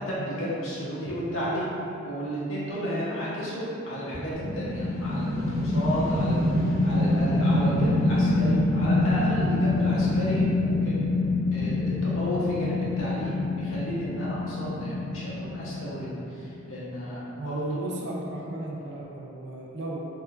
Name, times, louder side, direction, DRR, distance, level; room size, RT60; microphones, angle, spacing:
voice 1, 0.0-1.7 2.0-11.0 11.5-16.1 16.4-17.8, equal, 75° left, -8 dB, 0.7 m, -32 dB
sound 1, 4.3-16.5, left 2 dB, 35° left, 0.4 m, -25 dB
voice 2, 17.4-20.0, right 1 dB, 55° right, -3 dB, 0.4 m, -34 dB
2.9 x 2.2 x 2.4 m, 2.7 s
head